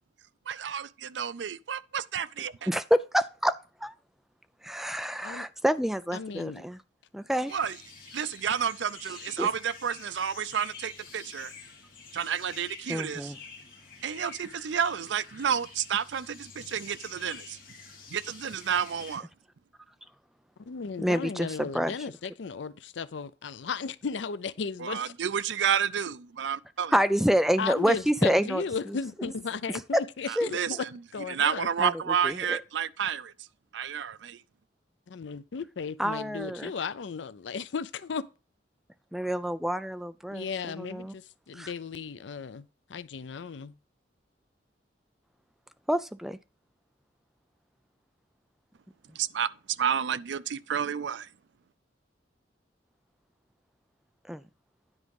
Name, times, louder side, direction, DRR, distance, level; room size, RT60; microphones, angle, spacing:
voice 1, 0.5-2.5 7.5-7.8 8.1-11.5 12.1-13.3 14.0-17.6 18.1-19.3 24.8-26.9 30.3-30.9 31.3-33.3 33.7-34.4 49.2-49.5 49.8-51.3, right 8 dB, 75° right, 0.5 m, -30 dB
voice 2, 2.7-3.9 4.6-6.8 7.1-7.5 9.4-9.5 12.9-13.4 21.0-22.0 26.9-29.3 29.9-30.0 30.4-30.5 31.8-32.6 36.0-36.7 39.1-41.1 41.5-41.7 45.9-46.4 54.3-54.4, equal, ahead, 0.4 m, -28 dB
voice 3, 6.1-6.7 20.7-25.1 27.6-30.8 31.1-31.7 35.1-38.2 40.3-42.6 42.9-43.7, left 5 dB, 85° left, 0.5 m, -35 dB
sound 1, 7.5-19.2, left 5 dB, 55° left, 2.4 m, -48 dB
9.8 x 4.8 x 5.3 m
head